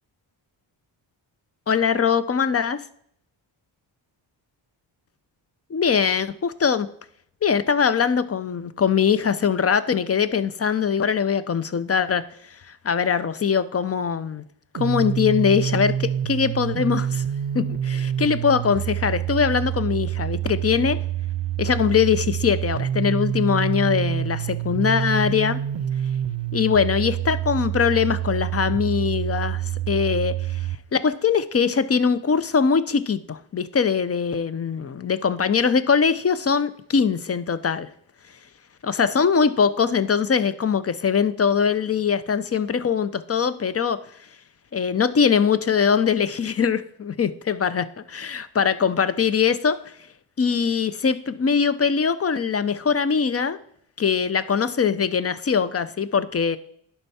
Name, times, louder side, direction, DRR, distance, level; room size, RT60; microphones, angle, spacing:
voice 1, 1.7-2.8 5.7-6.9 7.4-12.2 12.8-14.4 14.7-17.2 17.5-21.0 21.6-25.6 26.5-30.6 30.9-37.9 38.8-44.0 44.7-49.8 50.4-53.6 54.0-56.6, left 6 dB, 30° left, 14 dB, 0.5 m, -22 dB
sound 1, 14.7-30.8, right 10 dB, 65° right, 0.7 m, -27 dB
11.0 x 4.6 x 4.2 m, 0.67 s
cardioid pair, 60°, 49 cm